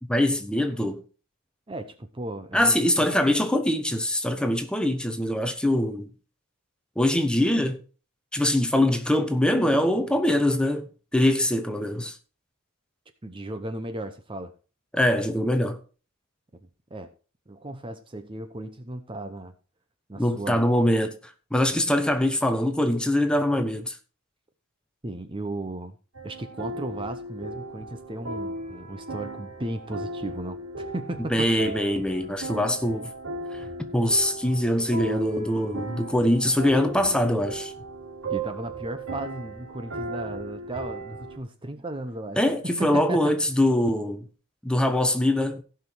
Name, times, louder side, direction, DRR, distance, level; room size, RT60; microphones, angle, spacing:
voice 1, 0.1-1.0 2.5-6.1 7.0-7.8 8.3-10.9 11.1-12.1 14.9-15.8 20.2-21.2 21.5-24.0 31.3-33.1 33.5-33.6 33.9-37.7 42.4-44.3 44.6-45.6, left 1 dB, 5° left, 0.9 m, -23 dB
voice 2, 1.7-3.1 13.2-14.5 16.6-17.1 17.5-19.5 20.1-20.6 25.0-26.0 26.2-31.5 38.3-42.4 42.8-43.3, right 1 dB, 25° right, 0.7 m, -35 dB
sound 1, 26.1-41.4, right 2 dB, 85° right, 3.8 m, -36 dB
16.0 x 5.8 x 4.5 m
head